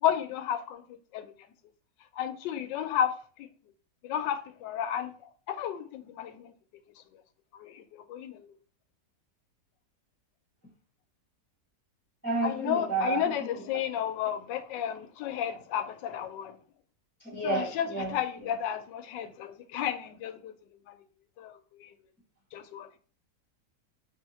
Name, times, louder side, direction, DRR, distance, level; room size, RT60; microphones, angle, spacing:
voice 1, 0.0-0.8 1.1-1.3 2.2-3.5 4.0-5.1 5.5-6.5 7.5-8.5 12.4-16.6 17.4-20.5 20.9-21.0 21.4-21.9 22.5-23.0, left 9 dB, 90° left, 1.3 m, -32 dB
voice 2, 12.2-13.6 17.3-18.1 18.4-18.5, right 3 dB, 10° left, 0.8 m, -31 dB
3.5 x 2.8 x 4.0 m
omnidirectional pair, 1.9 m